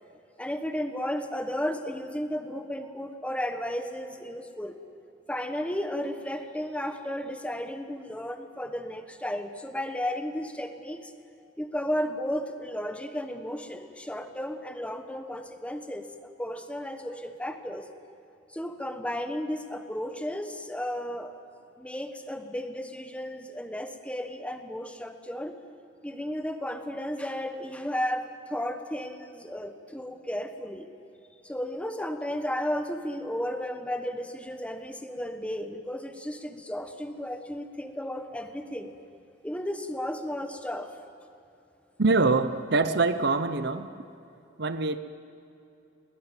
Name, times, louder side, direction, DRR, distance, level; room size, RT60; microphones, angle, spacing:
voice 1, 0.4-4.8 5.3-11.1 11.6-17.9 18.5-21.4 21.8-25.5 26.0-30.9 31.4-38.9 39.4-40.9, equal, 5° left, 7 dB, 1.2 m, -34 dB
voice 2, 42.0-43.9 44.6-45.0, right 3 dB, 65° right, 11 dB, 1.0 m, -24 dB
21.5 x 19.0 x 9.1 m, 2.8 s
head